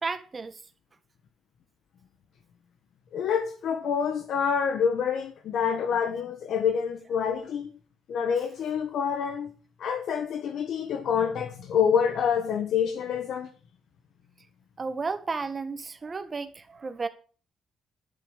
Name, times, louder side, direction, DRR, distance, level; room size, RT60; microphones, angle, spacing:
voice 1, 0.0-0.6 14.8-17.1, right 4 dB, 25° right, 1.6 m, -33 dB
voice 2, 3.1-7.7 8.1-9.5 9.8-13.5, left 7 dB, 65° left, 1.3 m, -27 dB
11.5 x 6.9 x 8.7 m
cardioid pair, 160°, 0 cm